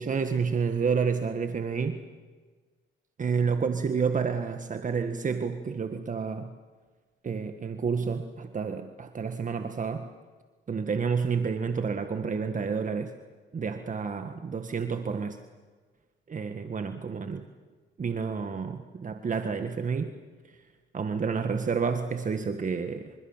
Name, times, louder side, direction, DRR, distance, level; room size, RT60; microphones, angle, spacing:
voice 1, 0.0-2.0 3.2-6.5 7.2-10.1 10.7-13.1 13.5-15.4 16.3-17.5 18.0-20.1 20.9-23.1, right 5 dB, 40° right, 7 dB, 1.8 m, -29 dB
28.0 x 26.5 x 7.4 m, 1.4 s
cardioid pair, 90°, 20 cm